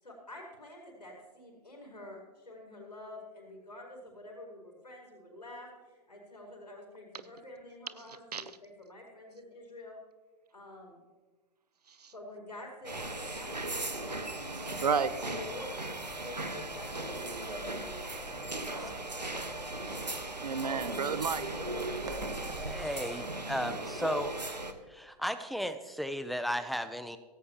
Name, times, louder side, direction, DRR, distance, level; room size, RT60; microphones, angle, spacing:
voice 1, 0.0-10.0 10.5-11.0 12.1-15.9 16.2-18.2 18.6-19.7, left 1 dB, 80° left, -2 dB, 4.5 m, -48 dB
voice 2, 8.1-8.4 11.9-12.1 14.8-15.1 20.4-21.6, right 6 dB, 70° right, 14 dB, 0.9 m, -32 dB
sound 1, 12.8-24.7, right 2 dB, 90° right, 1.3 m, -37 dB
sound 2, 16.0-22.8, right 2 dB, 20° right, 1.4 m, -50 dB
voice 3, 22.6-24.6 24.9-27.2, equal, ahead, 11 dB, 0.7 m, -35 dB
16.5 x 16.5 x 3.0 m, 1.3 s
figure-of-eight pair, 110°, 21 cm